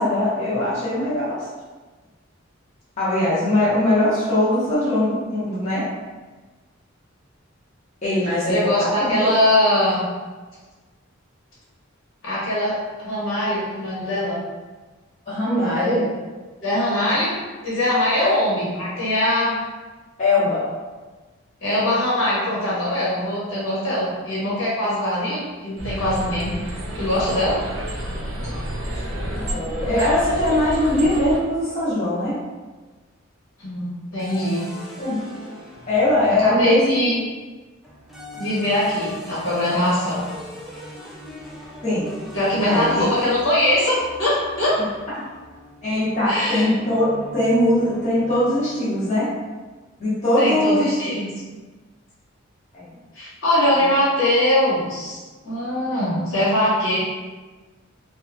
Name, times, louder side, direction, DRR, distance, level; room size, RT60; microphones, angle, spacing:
voice 1, 0.0-1.5 3.0-5.9 8.0-9.3 15.3-16.1 17.1-17.2 18.2-18.4 20.2-20.6 29.3-32.4 35.0-35.2 35.9-37.2 41.8-42.1 42.5-43.1 45.8-49.3 50.0-51.0 52.7-52.9 53.8-53.9, left 1 dB, 35° left, -11 dB, 0.7 m, -21 dB
voice 2, 8.5-10.0 12.2-12.8 13.0-14.4 15.5-16.1 16.6-17.4 17.6-19.5 21.6-26.5 27.0-27.6 33.6-34.6 36.4-37.1 38.4-40.3 42.3-44.7 46.3-46.7 50.4-51.3 53.1-57.0, left 1 dB, 70° left, -8 dB, 1.2 m, -22 dB
sound 1, 25.8-31.4, equal, 65° right, 0.6 m, -30 dB
sound 2, 34.2-36.8 37.8-49.0, left 1 dB, ahead, 0.4 m, -39 dB
2.7 x 2.3 x 2.5 m, 1.3 s
head